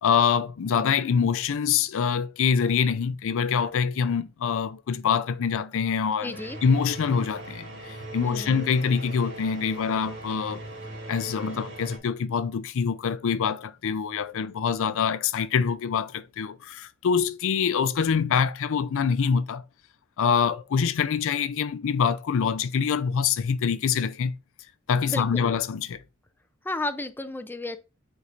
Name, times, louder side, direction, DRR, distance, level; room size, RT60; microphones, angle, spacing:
voice 1, 0.0-6.4 6.6-10.6 11.1-19.6 20.2-24.4 24.9-26.0, left 6 dB, 65° left, 0.4 m, -25 dB
voice 2, 6.2-6.6 8.2-8.6 25.1-25.5 26.6-27.8, left 2 dB, 10° left, 0.4 m, -33 dB
sound 1, 6.3-12.0, right 2 dB, 55° right, 2.4 m, -40 dB
8.3 x 4.7 x 2.5 m
head